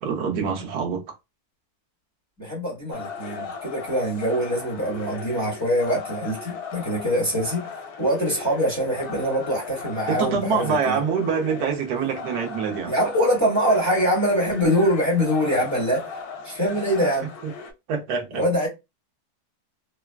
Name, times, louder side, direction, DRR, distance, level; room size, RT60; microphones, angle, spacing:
voice 1, 0.0-1.0 10.1-12.9 16.7-17.1 17.4-17.5 17.9-18.7, right 6 dB, 85° right, 1.3 m, -26 dB
voice 2, 2.4-7.6 8.0-11.0 12.9-16.1 16.4-17.3 18.3-18.7, equal, 10° left, 1.2 m, -23 dB
sound 1, 2.9-17.7, left 5 dB, 75° left, 1.1 m, -37 dB
3.4 x 2.3 x 2.2 m
omnidirectional pair, 1.6 m